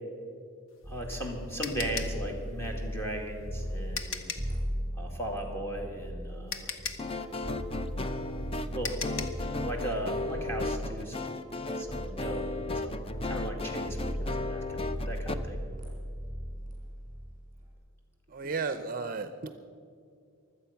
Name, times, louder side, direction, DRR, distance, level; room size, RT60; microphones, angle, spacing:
sound 1, 0.7-4.6 6.0-6.1 6.5-9.5, left 5 dB, 70° left, 1.1 m, -38 dB
sound 2, 0.8-1.4 1.7-4.0 4.3-11.1 11.3-13.6 13.8-17.6, equal, 20° right, 4.5 m, -37 dB
voice 1, 0.9-4.3 5.0-6.7 8.0-8.2 8.7-9.0 9.6-11.4 11.8-12.5 12.8-15.6, right 1 dB, 10° left, 0 dB, 2.1 m, -37 dB
sound 3, 7.0-15.3, left 2 dB, 25° left, 0.5 m, -35 dB
voice 2, 18.3-19.5, right 4 dB, 40° right, 10 dB, 0.6 m, -34 dB
23.5 x 8.4 x 5.8 m, 2.4 s
head